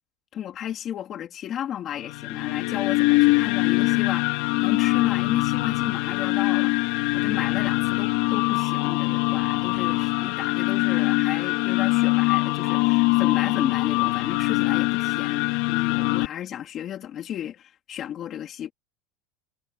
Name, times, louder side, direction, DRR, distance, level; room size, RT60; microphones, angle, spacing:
voice 1, 0.3-4.3 4.6-6.8 7.1-18.7, left 10 dB, 30° left, 3.0 m, -33 dB
sound 1, 2.0-16.3, left 23 dB, 65° left, 2.8 m, -23 dB
supercardioid pair, 160°, 0 cm